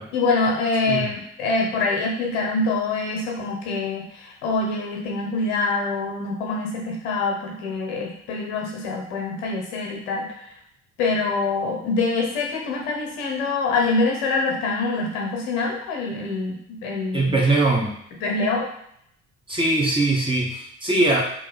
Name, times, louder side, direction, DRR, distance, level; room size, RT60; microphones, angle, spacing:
voice 1, 0.1-10.3 11.0-17.4 18.2-18.6, left 3 dB, 65° left, -1 dB, 1.0 m, -25 dB
voice 2, 17.1-18.0 19.5-21.2, right 2 dB, 15° right, -2 dB, 1.2 m, -21 dB
3.1 x 2.9 x 4.0 m, 0.71 s
figure-of-eight pair, 50°, 37 cm